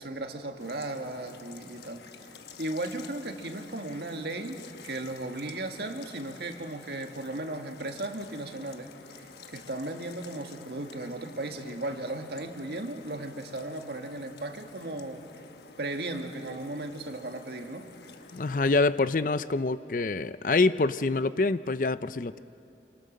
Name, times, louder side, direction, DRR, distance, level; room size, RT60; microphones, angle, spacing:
voice 1, 0.0-4.6 4.8-15.2 15.8-17.9, right 2 dB, 70° right, 5 dB, 1.8 m, -36 dB
sound 1, 0.6-18.9, left 5 dB, 70° left, 1.2 m, -50 dB
voice 2, 18.3-22.4, left 3 dB, 50° left, 14 dB, 0.5 m, -26 dB
27.5 x 25.5 x 6.5 m, 2.5 s
head